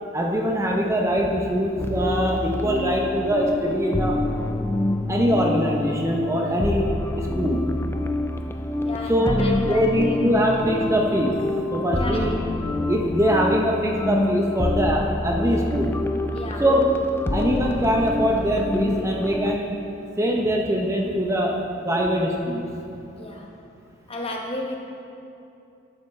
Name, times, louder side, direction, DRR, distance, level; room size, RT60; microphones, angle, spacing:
voice 1, 0.1-4.1 5.1-6.9 7.1-7.6 9.1-11.4 11.7-12.4 12.9-15.9 16.6-16.9 17.3-19.7 20.2-22.6, equal, 15° right, 0 dB, 0.7 m, -22 dB
sound 1, 1.8-19.6, left 1 dB, 10° left, 0.3 m, -27 dB
voice 2, 8.8-10.2 12.0-12.3 16.3-16.6 23.2-23.5 24.1-24.8, left 1 dB, 30° left, 0 dB, 1.0 m, -32 dB
11.5 x 6.8 x 4.2 m, 2.8 s
head